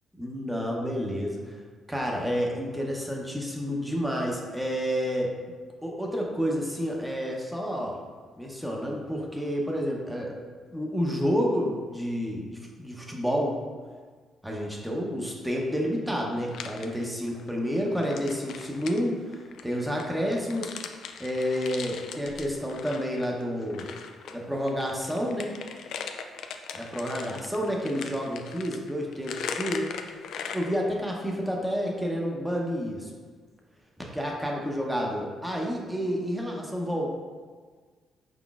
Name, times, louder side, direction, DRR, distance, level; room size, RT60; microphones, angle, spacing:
voice 1, 0.2-1.6 1.9-5.3 5.8-8.0 8.4-10.3 10.7-13.6 14.4-20.7 21.2-23.9 24.3-25.6 26.7-29.9 30.5-33.1 34.1-37.1, equal, 5° right, -2 dB, 0.7 m, -29 dB
sound 1, 16.5-17.5 17.9-24.4 24.7-30.8, left 6 dB, 75° left, 0.3 m, -39 dB
4.8 x 3.8 x 2.4 m, 1.5 s
cardioid pair, 90°, 0 cm